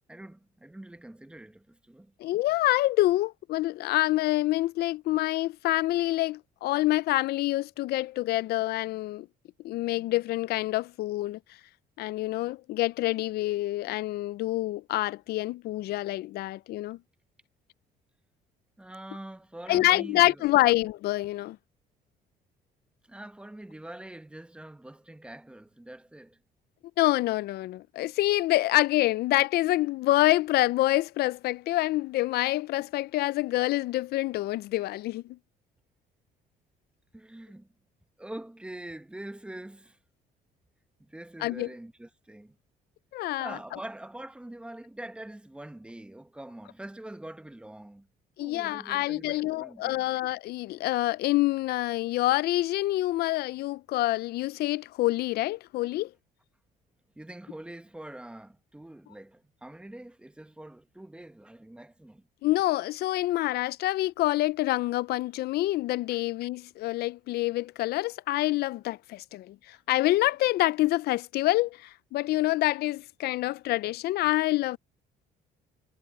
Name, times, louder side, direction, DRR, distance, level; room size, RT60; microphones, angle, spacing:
voice 1, 0.1-2.1 18.8-20.4 23.1-26.4 37.1-37.7 38.2-40.0 41.0-42.6 43.4-48.1 48.4-50.1 57.2-62.2, right 1 dB, 5° right, 0.9 m, -44 dB
voice 2, 2.2-9.3 9.6-11.4 12.0-17.0 19.7-21.6 27.0-35.4 41.4-41.7 43.1-43.6 48.4-56.1 62.4-74.8, left 17 dB, 70° left, 0.5 m, -27 dB
cardioid pair, 110°, 17 cm